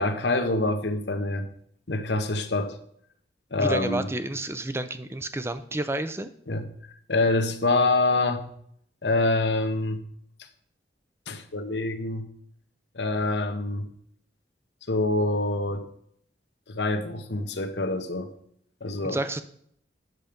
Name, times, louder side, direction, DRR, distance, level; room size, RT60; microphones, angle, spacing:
voice 1, 0.0-1.4 1.9-2.8 3.5-4.1 6.5-6.6 7.1-8.4 9.0-10.0 11.3-12.2 12.9-13.9 14.9-15.9 16.7-18.3 18.8-19.2, left 2 dB, 75° left, 7 dB, 1.1 m, -25 dB
voice 2, 3.6-6.3 19.0-19.4, right 1 dB, 15° right, 11 dB, 0.6 m, -30 dB
9.4 x 7.2 x 5.2 m, 0.67 s
head